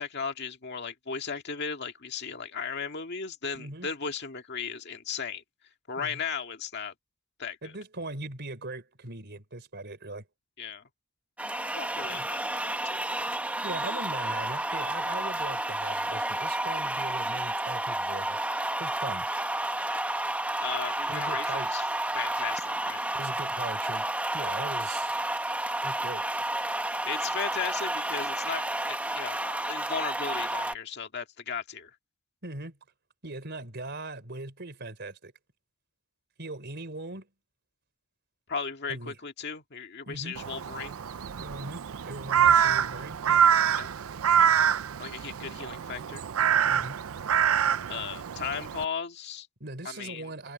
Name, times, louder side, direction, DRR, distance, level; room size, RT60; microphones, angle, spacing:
voice 1, 0.0-5.4 5.9-6.9 7.4-7.7 10.6-10.8 11.7-12.8 20.6-21.9 22.1-23.0 27.1-31.9 38.5-41.0 43.7-43.9 45.0-46.2 47.9-49.5 49.8-50.3, left 6 dB, 50° left, 1.9 m, -36 dB
voice 2, 3.5-3.9 6.0-6.2 7.6-10.2 12.0-12.3 13.6-19.3 21.1-21.7 23.1-25.2 25.8-26.3 32.4-32.8 33.2-35.3 36.4-37.3 38.9-39.2 40.1-40.4 41.4-43.4 46.7-47.0 49.6-50.5, right 2 dB, 50° right, 3.9 m, -40 dB
sound 1, 11.4-30.7, right 1 dB, 5° right, 1.1 m, -31 dB
Crow, 40.4-48.9, right 8 dB, 80° right, 0.5 m, -25 dB
head